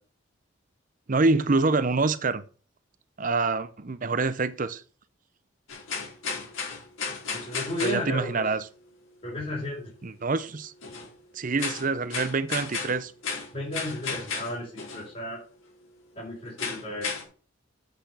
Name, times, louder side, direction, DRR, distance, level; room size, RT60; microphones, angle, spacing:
voice 1, 1.1-2.4 3.2-4.8 7.8-8.6 10.0-10.7 11.3-13.1, right 3 dB, 40° right, 0.6 m, -26 dB
sound 1, 5.7-8.0 10.8-11.1 11.6-15.1 16.6-17.2, left 5 dB, 85° left, 4.4 m, -34 dB
voice 2, 7.3-8.4 9.2-9.9 13.5-15.4 16.1-17.1, left 1 dB, 30° left, 4.2 m, -33 dB
8.2 x 6.2 x 6.8 m
head